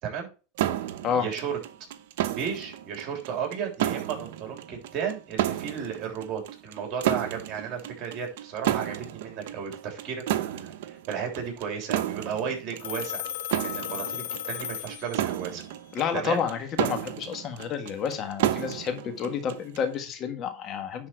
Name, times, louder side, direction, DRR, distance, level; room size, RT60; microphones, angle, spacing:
sound 1, 0.6-19.9, right 12 dB, 70° right, 0.8 m, -32 dB
voice 1, 1.1-1.6 2.3-13.2 13.6-15.6 16.1-16.4, right 7 dB, 45° right, 3.5 m, -34 dB
Telephone, 12.8-15.5, left 11 dB, 80° left, 0.8 m, -35 dB
voice 2, 15.9-21.1, left 7 dB, 40° left, 1.6 m, -30 dB
10.5 x 4.3 x 4.6 m
supercardioid pair, 115°, 0 cm